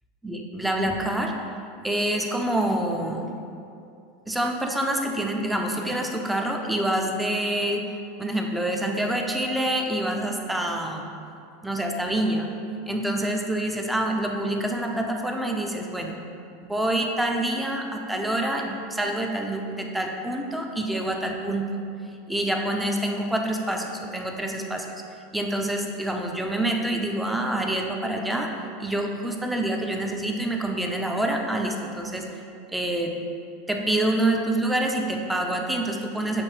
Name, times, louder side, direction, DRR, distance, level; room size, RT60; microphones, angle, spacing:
voice 1, 0.2-1.3 1.8-3.3 4.3-7.8 8.2-11.1 11.6-12.5 12.9-16.1 16.6-21.8 22.3-24.9 25.3-28.5 28.8-32.3 32.7-33.1 33.7-36.4, right 1 dB, 5° right, 2 dB, 0.5 m, -26 dB
6.7 x 2.6 x 3.0 m, 2.5 s
hypercardioid pair, 110°, 0 cm